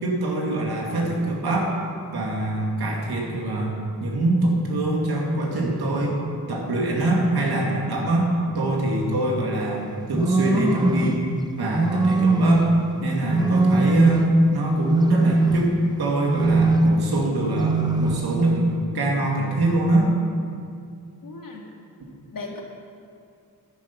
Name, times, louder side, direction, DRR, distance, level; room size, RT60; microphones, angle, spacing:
voice 1, 0.0-1.7 2.1-3.7 4.0-6.2 6.5-11.3 11.6-12.7 13.0-15.7 16.0-20.1, right 1 dB, 85° right, -2 dB, 2.4 m, -24 dB
sound 1, 10.1-11.2 11.7-12.8 13.3-14.4 14.8-15.9 16.3-17.0 17.5-18.3, right 3 dB, 10° right, 0.8 m, -20 dB
voice 2, 21.2-21.7 22.3-22.6, left 3 dB, 60° left, 0 dB, 2.0 m, -36 dB
11.0 x 10.0 x 5.4 m, 2.3 s
cardioid pair, 70°, 37 cm